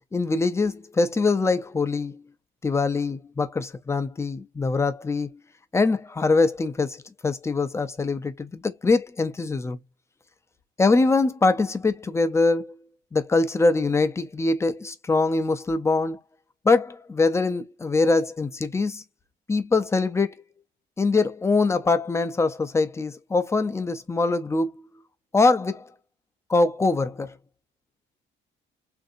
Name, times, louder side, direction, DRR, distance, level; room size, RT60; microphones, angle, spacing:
voice 1, 0.1-2.2 2.6-5.3 5.7-9.8 10.8-12.7 13.1-16.2 16.6-19.0 19.5-20.3 21.0-24.7 25.3-25.8 26.5-27.3, left 3 dB, 15° left, 0.4 m, -23 dB
3.5 x 2.6 x 2.5 m
cardioid pair, 145°, 21 cm